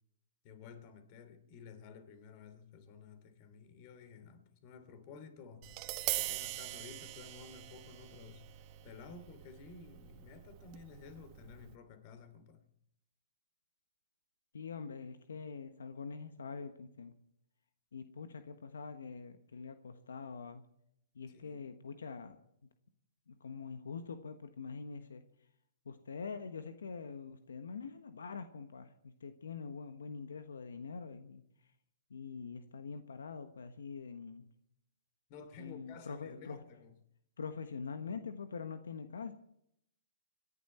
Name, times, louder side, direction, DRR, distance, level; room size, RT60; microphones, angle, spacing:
voice 1, 0.4-5.7 6.1-12.6 21.3-21.6 35.3-36.9, left 5 dB, 45° left, 3.0 m, -53 dB
Tap, 5.6-11.7, right 16 dB, 40° right, 1.5 m, -43 dB
voice 2, 14.5-17.1 17.9-20.6 21.1-22.4 23.3-25.2 25.8-31.4 32.1-34.5 35.6-36.6 37.4-39.3, left 5 dB, 85° left, 1.3 m, -44 dB
26.5 x 11.0 x 4.4 m
hypercardioid pair, 130°, 0 cm